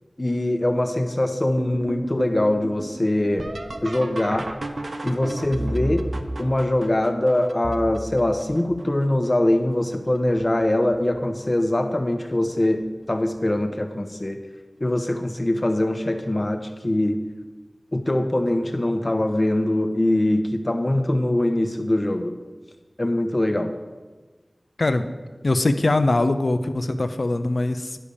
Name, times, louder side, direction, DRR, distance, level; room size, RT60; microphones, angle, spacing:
voice 1, 0.2-3.5 3.8-4.5 5.0-6.1 6.4-14.4 14.8-17.2 17.9-22.4 23.0-23.7, left 1 dB, 40° left, 7 dB, 1.0 m, -23 dB
sound 1, 1.6-9.3 9.9-10.4 10.9-11.5 12.8-12.9 13.6-14.0 16.1-16.2 18.5-18.6, right 1 dB, 80° right, 0.6 m, -34 dB
voice 2, 25.4-28.0, left 2 dB, 75° left, 10 dB, 0.6 m, -22 dB
11.5 x 5.1 x 7.0 m, 1.3 s
wide cardioid pair, 40°, 0 cm